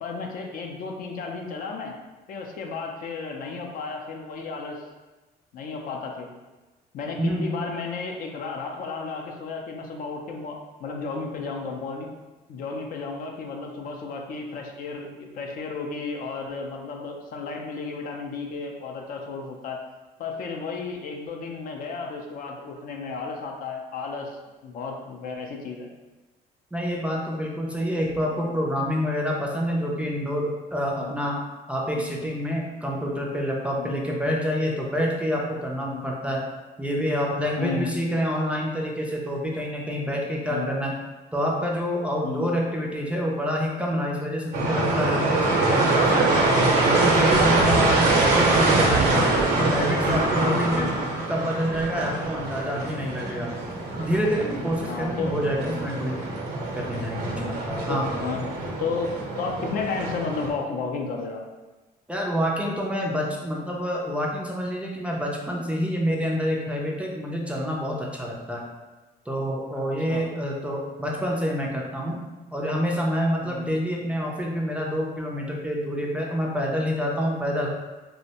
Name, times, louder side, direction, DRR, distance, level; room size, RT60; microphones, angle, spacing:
voice 1, 0.0-1.9 2.3-4.8 5.5-6.3 6.9-12.1 12.5-19.8 20.2-25.9 31.0-31.1 31.9-32.1 33.8-34.0 35.9-36.0 37.6-37.9 40.5-40.7 42.2-42.5 44.6-44.7 48.1-48.3 50.7-51.0 54.9-55.3 55.7-55.8 57.4-57.6 57.9-58.5 58.8-61.5 70.1-70.2 73.4-73.7, left 4 dB, 55° left, 1 dB, 0.4 m, -33 dB
voice 2, 7.2-7.5 26.7-31.4 31.7-36.4 36.8-40.9 41.3-46.5 46.8-49.2 49.6-50.9 51.3-53.5 53.9-56.3 56.7-58.1 62.1-68.6 69.3-72.2 72.5-77.7, equal, 5° right, -2 dB, 0.3 m, -27 dB
sound 1, 44.5-60.5, right 2 dB, 85° right, 0.7 m, -24 dB
2.5 x 2.1 x 2.8 m, 1.2 s
cardioid pair, 110°, 17 cm